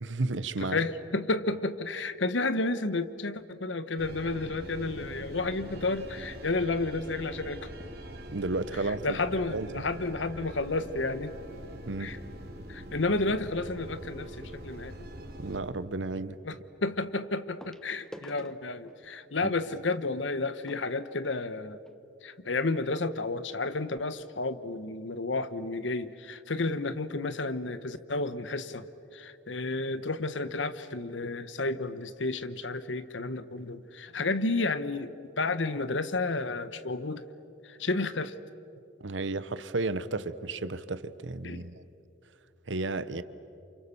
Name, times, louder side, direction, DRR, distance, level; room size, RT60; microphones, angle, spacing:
voice 1, 0.0-0.8 8.3-9.2 9.5-9.9 11.9-12.1 15.4-16.4 19.4-19.5 39.0-41.7 42.7-43.2, right 3 dB, 85° right, 14 dB, 1.0 m, -33 dB
voice 2, 0.7-7.7 9.0-11.3 12.0-12.2 12.7-15.1 16.4-16.6 16.8-21.8 22.2-28.8 29.1-37.2 37.7-38.3 41.4-41.7, left 3 dB, 80° left, 13 dB, 1.2 m, -31 dB
sound 1, 4.0-15.6, right 1 dB, 55° right, 3.4 m, -44 dB
sound 2, 17.6-22.0 22.8-22.9 23.1-23.3 23.8-23.9, equal, 5° left, 1.0 m, -51 dB
30.0 x 28.0 x 7.1 m, 2.7 s
head